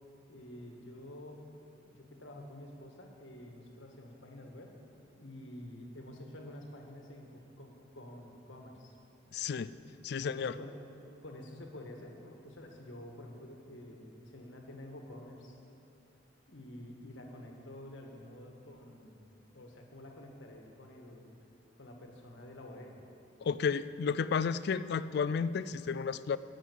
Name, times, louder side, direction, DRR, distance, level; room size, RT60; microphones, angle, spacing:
voice 1, 0.3-1.5 1.8-4.7 5.1-9.0 10.1-10.8 11.2-15.6 16.5-19.3 19.5-21.3 21.8-23.0, left 1 dB, 85° left, 2 dB, 1.6 m, -49 dB
voice 2, 9.3-9.7 10.0-10.5 23.4-26.4, left 6 dB, 60° left, 15 dB, 0.3 m, -32 dB
10.5 x 7.6 x 8.4 m, 2.7 s
head